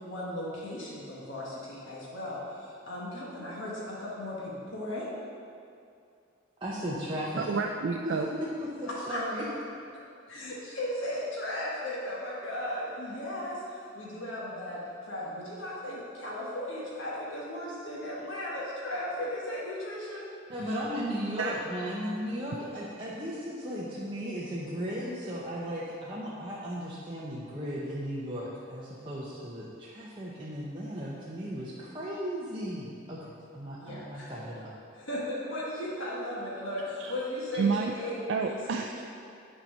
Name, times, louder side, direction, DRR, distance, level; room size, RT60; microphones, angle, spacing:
voice 1, 0.0-5.1 8.8-9.2 10.3-20.3 20.6-20.8 33.8-34.4 34.9-38.9, left 1 dB, 70° left, -6 dB, 1.4 m, -36 dB
voice 2, 6.6-7.5 8.0-9.5 20.5-33.2 33.5-34.7, equal, 25° right, -7 dB, 0.8 m, -36 dB
voice 3, 7.4-8.3 21.4-21.6 21.9-22.0 37.0-37.1 37.5-37.9 38.3-39.0, right 5 dB, 60° right, 2 dB, 0.4 m, -30 dB
8.7 x 4.4 x 5.4 m, 2.5 s
head